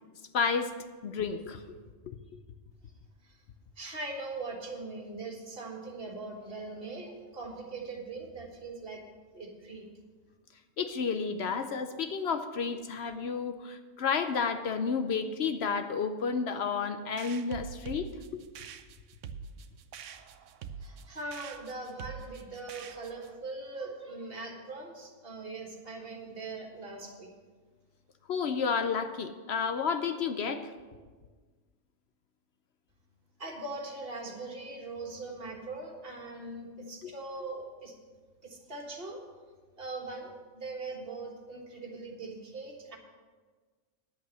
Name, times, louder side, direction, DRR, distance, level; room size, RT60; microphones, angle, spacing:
voice 1, 0.3-0.7 1.0-1.6 2.1-2.2 10.8-18.4 28.3-30.7 37.0-37.1, left 5 dB, 65° left, 9 dB, 0.9 m, -31 dB
voice 2, 3.8-9.0 9.3-9.9 20.8-27.3 33.4-37.9 38.4-39.2 39.8-43.0, right 3 dB, 50° right, 1 dB, 1.8 m, -41 dB
sound 1, 17.2-23.4, right 7 dB, 90° right, 1.0 m, -45 dB
10.0 x 8.2 x 6.3 m, 1.4 s
omnidirectional pair, 1.3 m